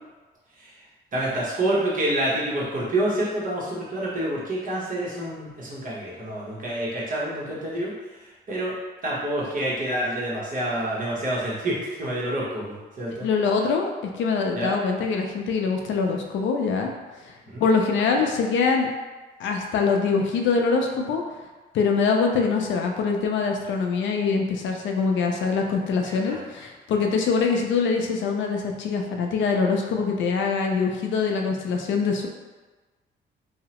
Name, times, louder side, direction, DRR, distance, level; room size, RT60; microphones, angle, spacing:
voice 1, 1.1-7.9 8.5-8.8 9.0-13.3 14.5-14.7 17.4-17.7 26.0-26.4, right 1 dB, 45° right, -6 dB, 1.0 m, -27 dB
voice 2, 13.2-13.9 14.2-16.9 17.2-17.3 17.6-18.9 19.4-21.2 21.7-32.3, left 5 dB, 70° left, 2 dB, 0.4 m, -23 dB
2.7 x 2.0 x 2.9 m, 1.3 s
cardioid pair, 90°, 20 cm